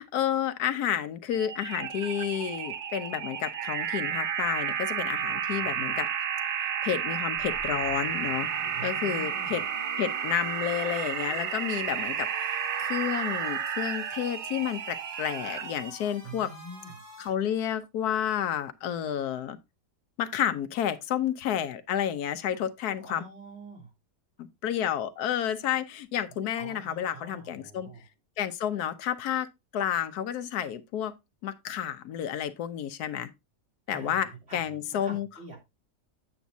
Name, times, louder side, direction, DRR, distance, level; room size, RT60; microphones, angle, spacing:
voice 1, 0.0-6.1 6.8-8.5 8.8-9.6 10.0-16.5 17.2-19.6 20.2-23.2 24.4-27.9 28.4-29.5 29.7-31.1 31.4-33.3 33.9-35.3, left 10 dB, 70° left, 1.2 m, -30 dB
sound 1, 1.3-15.9, right 8 dB, 65° right, 0.7 m, -32 dB
voice 2, 5.5-6.0 8.7-9.7 16.2-17.0 23.0-23.9 26.5-28.1 33.9-35.6, right 3 dB, 40° right, 3.1 m, -46 dB
sound 2, 7.3-17.3, equal, 20° right, 3.7 m, -48 dB
8.3 x 7.0 x 2.6 m
omnidirectional pair, 1.8 m